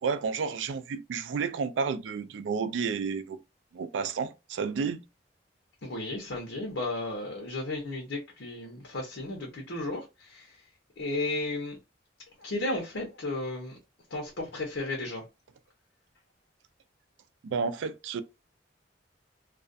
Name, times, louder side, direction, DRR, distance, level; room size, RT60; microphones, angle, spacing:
voice 1, 0.0-3.4 3.7-5.0 17.4-18.2, right 5 dB, 90° right, 0.3 m, -31 dB
voice 2, 5.8-10.6 11.0-11.8 12.4-13.8 14.1-15.2, left 2 dB, 85° left, 0.8 m, -34 dB
2.4 x 2.2 x 2.5 m
head